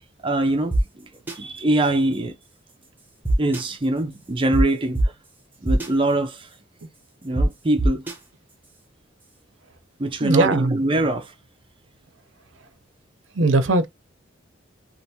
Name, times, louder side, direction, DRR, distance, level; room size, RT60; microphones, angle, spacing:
voice 1, 0.2-1.1 1.4-2.4 3.4-5.1 5.6-6.5 7.2-8.0 10.0-11.3, right 1 dB, 25° right, 0.5 m, -23 dB
sound 1, 0.7-0.8 1.3-1.4 3.2-3.6 4.5-4.6 4.9-5.0 5.7-5.9 7.4-7.5 7.8-8.1, right 1 dB, 10° right, 0.9 m, -20 dB
voice 2, 10.2-10.8 13.4-13.9, right 2 dB, 85° right, 0.7 m, -19 dB
3.4 x 2.5 x 2.8 m
head